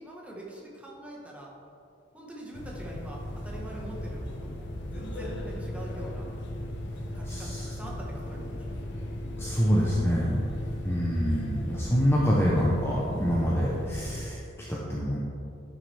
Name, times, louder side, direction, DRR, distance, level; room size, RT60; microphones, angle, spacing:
voice 1, 0.0-1.5 2.1-6.3 6.9-9.0, right 1 dB, 5° right, -4 dB, 1.4 m, -44 dB
sound 1, 2.5-14.3, left 1 dB, 60° left, 1.0 m, -36 dB
voice 2, 7.2-7.7 9.4-10.4 10.8-14.4 14.7-15.2, equal, 10° left, -5 dB, 0.9 m, -26 dB
11.5 x 6.3 x 3.5 m, 2.6 s
head